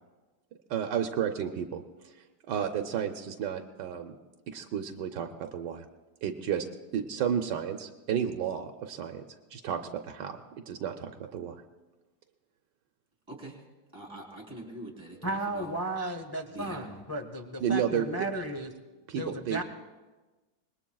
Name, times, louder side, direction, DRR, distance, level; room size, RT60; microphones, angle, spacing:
voice 1, 0.7-2.1 2.5-4.2 4.5-5.8 6.2-6.6 6.9-9.2 9.5-9.8 10.1-10.4 10.7-11.6 17.6-18.1 19.1-19.6, right 8 dB, 90° right, 4 dB, 1.4 m, -32 dB
voice 2, 13.3-13.6 13.9-15.7 16.5-17.0, right 2 dB, 15° right, -1 dB, 3.7 m, -44 dB
voice 3, 15.2-18.7 19.1-19.6, right 1 dB, 30° left, 4 dB, 0.4 m, -34 dB
25.5 x 20.5 x 2.3 m, 1.2 s
omnidirectional pair, 1.8 m